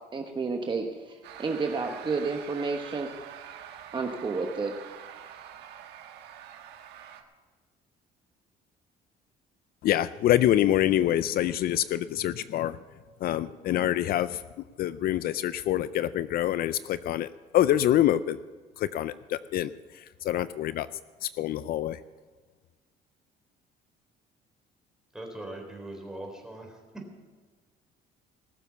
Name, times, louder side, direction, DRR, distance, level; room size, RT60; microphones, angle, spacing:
voice 1, 0.1-3.1 3.9-4.7, right 4 dB, 30° right, 3 dB, 1.2 m, -31 dB
sound 1, 1.2-7.2, right 9 dB, 85° right, 1.3 m, -45 dB
voice 2, 9.8-12.8 13.2-14.4 14.8-17.3 17.5-18.4 18.8-20.9 21.2-22.0, left 12 dB, 60° left, 15 dB, 0.4 m, -26 dB
voice 3, 25.1-27.0, right 1 dB, 5° right, 1 dB, 3.9 m, -41 dB
19.0 x 7.2 x 6.9 m, 1.4 s
cardioid pair, 110°, 17 cm